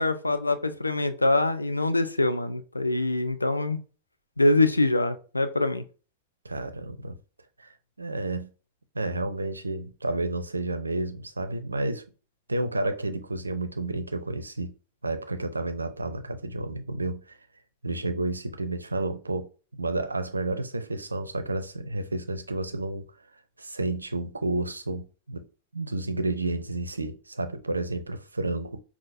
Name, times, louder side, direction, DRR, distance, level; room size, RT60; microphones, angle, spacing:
voice 1, 0.0-3.8 4.4-5.8, left 2 dB, 85° left, 0.4 m, -24 dB
voice 2, 6.4-7.2 7.6-7.7 8.0-8.5 8.9-12.0 12.5-14.7 15.0-17.4 17.8-19.5 19.8-23.1 23.6-25.5 25.7-28.8, right 2 dB, 80° right, 0.5 m, -31 dB
5.5 x 2.4 x 2.6 m
figure-of-eight pair, 90°, 0 cm